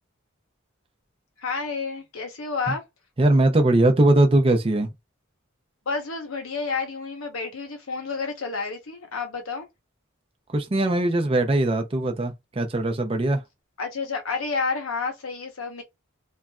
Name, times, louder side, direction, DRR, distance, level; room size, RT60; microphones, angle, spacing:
voice 1, 1.4-2.8 5.9-9.7 13.8-15.8, left 4 dB, 90° left, 0.9 m, -30 dB
voice 2, 3.2-4.9 10.5-13.4, right 2 dB, 25° right, 0.5 m, -20 dB
3.1 x 2.4 x 2.2 m
head